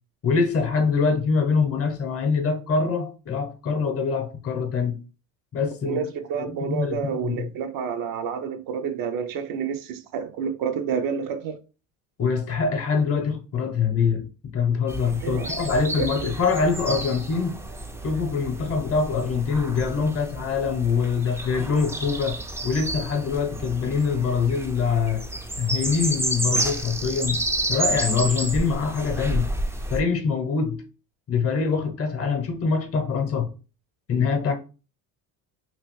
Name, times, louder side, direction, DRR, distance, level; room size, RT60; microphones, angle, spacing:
voice 1, 0.2-5.0 5.5-6.0 6.3-7.5 12.2-17.6 18.0-22.4 22.6-25.3 25.6-27.4 27.7-29.5 29.9-30.9 31.3-33.5 34.1-34.5, left 5 dB, 40° left, 0.8 m, -24 dB
voice 2, 5.8-11.6 15.2-15.6 16.0-16.3, right 7 dB, 60° right, 0.6 m, -29 dB
sound 1, 14.9-30.0, right 1 dB, 5° right, 0.4 m, -31 dB
2.9 x 2.6 x 3.1 m
supercardioid pair, 95°, 38 cm